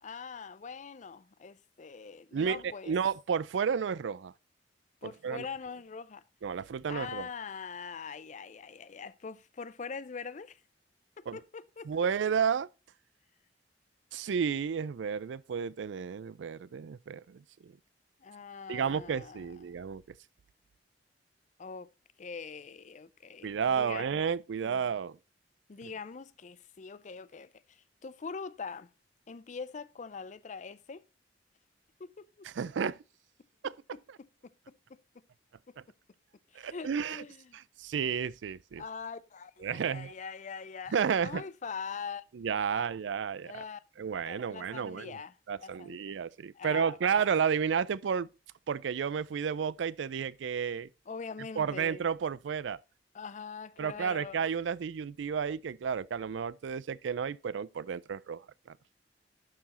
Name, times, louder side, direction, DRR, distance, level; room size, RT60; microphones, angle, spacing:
voice 1, 0.0-2.9 5.0-6.2 6.9-10.6 11.2-11.9 18.2-19.5 21.6-21.9 22.2-24.1 24.6-24.8 25.7-28.9 29.3-31.0 32.0-32.5 33.9-34.7 36.5-37.6 38.8-40.9 41.2-42.2 42.7-42.9 43.4-43.8 44.3-45.4 45.6-46.1 46.5-47.3 51.1-52.1 53.1-54.4, left 5 dB, 40° left, 0.5 m, -43 dB
voice 2, 2.9-4.3 5.0-5.5 6.4-7.3 11.3-11.4 11.9-12.7 14.1-17.7 18.7-20.2 23.4-25.2 32.4-33.0 33.6-33.7 36.6-37.2 37.5-38.8 39.6-40.1 40.9-41.4 42.3-43.6 44.0-45.2 45.5-48.3 48.7-50.9 51.6-52.8 53.8-58.4 58.7-58.8, right 7 dB, 85° right, 0.4 m, -32 dB
11.5 x 4.7 x 4.2 m
head